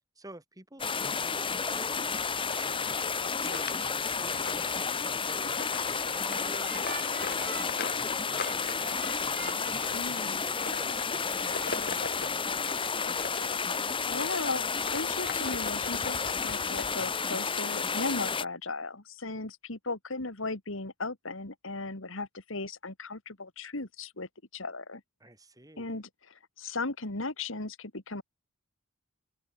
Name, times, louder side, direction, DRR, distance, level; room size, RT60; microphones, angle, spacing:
voice 1, 0.1-3.2 3.5-9.2 9.6-12.9 25.2-25.9, right 1 dB, 15° right, 5.0 m, -50 dB
sound 1, 0.8-18.4, left 5 dB, 25° left, 1.7 m, -31 dB
sound 2, 2.4-14.4 14.8-17.3, left 4 dB, 50° left, 5.5 m, -42 dB
sound 3, 5.9-10.7 11.1-11.7, right 8 dB, 50° right, 5.2 m, -47 dB
voice 2, 9.9-10.4 13.7-25.0 25.8-28.2, left 3 dB, 70° left, 2.8 m, -37 dB
head